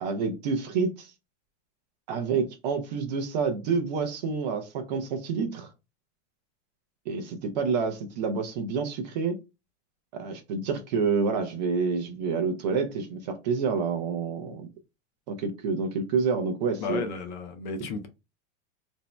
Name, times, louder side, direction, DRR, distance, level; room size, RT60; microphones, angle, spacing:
voice 1, 0.0-1.1 2.1-5.7 7.1-9.4 10.1-14.6 15.3-17.0, right 5 dB, 40° right, 0.4 m, -28 dB
voice 2, 16.8-18.1, left 4 dB, 40° left, 0.4 m, -33 dB
2.6 x 2.1 x 3.0 m
supercardioid pair, 175°, 36 cm